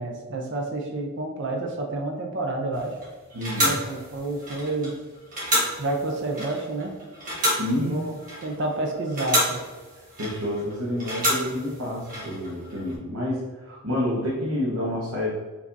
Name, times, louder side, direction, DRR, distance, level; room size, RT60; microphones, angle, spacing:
voice 1, 0.0-3.0 3.6-5.0 5.8-6.9 7.8-8.1 8.4-9.6, right 2 dB, 55° right, 1 dB, 0.5 m, -29 dB
sound 1, 2.7-12.9, equal, 35° right, 1.5 m, -30 dB
voice 2, 3.3-3.8 7.6-8.0 10.2-15.3, left 1 dB, 75° right, -6 dB, 0.9 m, -28 dB
4.7 x 3.4 x 2.6 m, 1.4 s
head